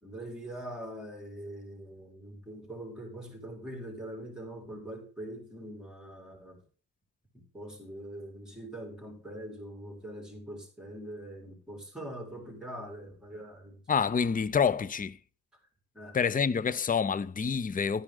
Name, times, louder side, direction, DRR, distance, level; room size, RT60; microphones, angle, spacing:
voice 1, 0.0-6.6 7.3-13.8 15.9-16.2, right 1 dB, ahead, 4.4 m, -43 dB
voice 2, 13.9-15.2 16.1-18.0, left 6 dB, 25° left, 0.5 m, -27 dB
12.5 x 9.7 x 3.8 m
wide cardioid pair, 105°, 35 cm